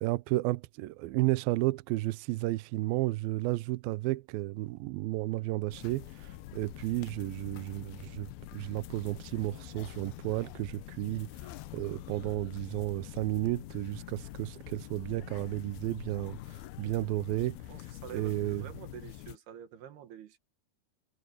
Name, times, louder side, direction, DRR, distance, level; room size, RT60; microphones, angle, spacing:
voice 1, 0.0-11.3 11.7-17.6 18.1-18.6, right 19 dB, 85° right, 2.1 m, -32 dB
sound 1, 5.7-19.4, left 14 dB, 75° left, 2.6 m, -45 dB
voice 2, 17.7-20.4, right 9 dB, 70° right, 3.8 m, -48 dB
omnidirectional pair, 4.9 m